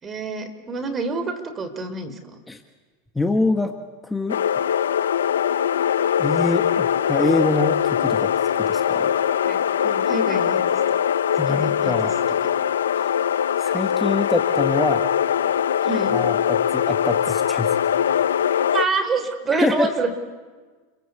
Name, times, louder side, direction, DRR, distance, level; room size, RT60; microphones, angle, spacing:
voice 1, 0.0-2.4 9.4-11.0 11.5-12.1 15.8-16.2 18.7-20.1, right 4 dB, 25° right, 10 dB, 3.9 m, -27 dB
voice 2, 3.1-3.7 4.0-4.4 6.2-9.1 11.4-12.1 13.6-15.0 16.1-17.7 19.5-19.9, left 2 dB, 10° left, 5 dB, 1.5 m, -25 dB
sound 1, 4.3-18.9, left 9 dB, 90° left, 0.8 m, -21 dB
29.5 x 23.5 x 8.4 m, 1.4 s
hypercardioid pair, 115°, 0 cm